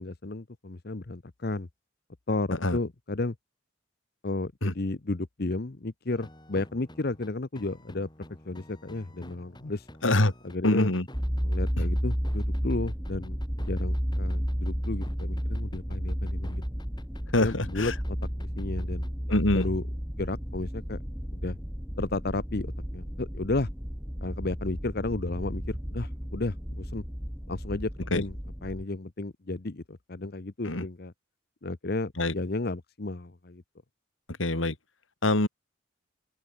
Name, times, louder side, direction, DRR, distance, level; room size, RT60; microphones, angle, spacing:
voice 1, 0.0-1.7 2.3-3.3 4.2-8.1 8.4-9.9 10.4-10.9 11.4-16.6 17.4-18.2 18.6-19.1 19.5-19.8 20.2-21.0 21.3-21.6 22.0-23.7 24.2-27.0 27.5-28.3 28.6-31.1 31.6-33.6, left 2 dB, 50° left, 0.9 m, -33 dB
sound 1, 6.1-19.7, left 1 dB, 20° left, 5.1 m, -50 dB
voice 2, 10.0-10.3 10.6-11.1 11.8-11.9 17.3-17.9 19.3-19.7 28.1-28.2 30.6-30.8 32.2-32.3 34.4-34.7 35.2-35.5, left 1 dB, 90° left, 3.0 m, -24 dB
sound 2, 11.1-28.8, equal, 5° right, 1.5 m, -32 dB
open air
head